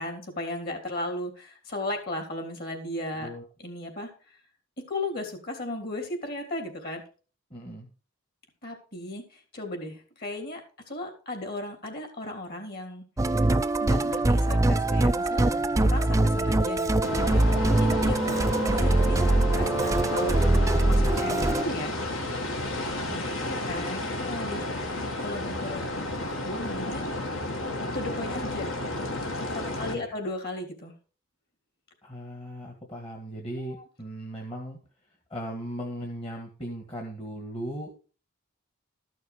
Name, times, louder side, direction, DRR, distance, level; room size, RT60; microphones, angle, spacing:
voice 1, 0.0-3.3 3.6-4.4 4.9-7.0 8.6-10.6 10.9-13.4 13.8-16.9 17.6-20.5 20.8-22.0 23.4-25.9 26.2-27.1 27.9-28.8 29.5-30.9 33.6-33.8, left 1 dB, 45° left, 4 dB, 3.2 m, -36 dB
voice 2, 7.5-7.9 22.9-24.0 25.0-25.1 29.9-30.1 32.0-34.8 35.3-38.1, equal, 25° left, 0 dB, 1.7 m, -38 dB
Musical instrument, 13.2-21.6, right 2 dB, 15° right, 0.4 m, -23 dB
sound 1, 17.0-30.0, left 2 dB, 60° left, 2.1 m, -32 dB
13.5 x 6.5 x 5.1 m, 0.38 s
head